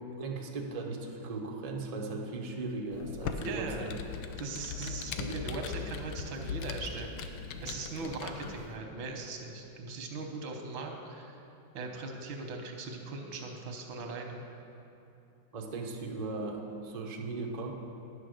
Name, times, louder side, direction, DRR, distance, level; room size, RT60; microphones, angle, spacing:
voice 1, 0.0-3.9 5.1-5.4 5.8-5.9 8.0-8.1 15.5-17.7, right 3 dB, 50° right, 0 dB, 0.4 m, -38 dB
Computer keyboard, 2.9-8.7, left 6 dB, 90° left, 1.4 m, -40 dB
voice 2, 3.4-4.0 4.4-11.4 11.7-14.4, right 3 dB, 85° right, 3 dB, 1.8 m, -40 dB
9.9 x 6.4 x 6.4 m, 2.7 s
omnidirectional pair, 2.1 m